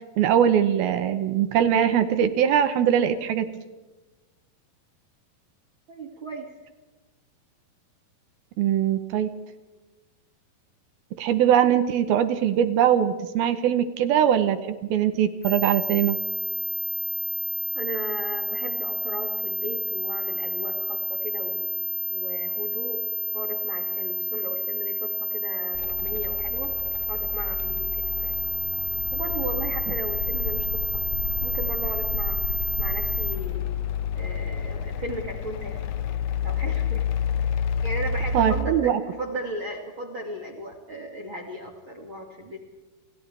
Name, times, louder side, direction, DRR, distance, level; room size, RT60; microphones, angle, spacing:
voice 1, 0.2-3.5 8.6-9.3 11.2-16.2 38.3-39.0, right 9 dB, 80° right, 9 dB, 2.9 m, -21 dB
voice 2, 5.9-6.5 17.7-21.7 22.1-23.0 23.3-26.7 27.1-28.3 29.1-31.0 31.4-33.7 34.1-36.1 36.4-37.1 37.8-42.6, right 1 dB, 40° right, 0 dB, 2.6 m, -36 dB
sound 1, 15.4-33.4, right 1 dB, 35° left, 1.2 m, -30 dB
sound 2, 25.7-38.6, left 6 dB, 75° left, 1.9 m, -29 dB
29.5 x 29.0 x 3.5 m, 1.2 s
omnidirectional pair, 4.4 m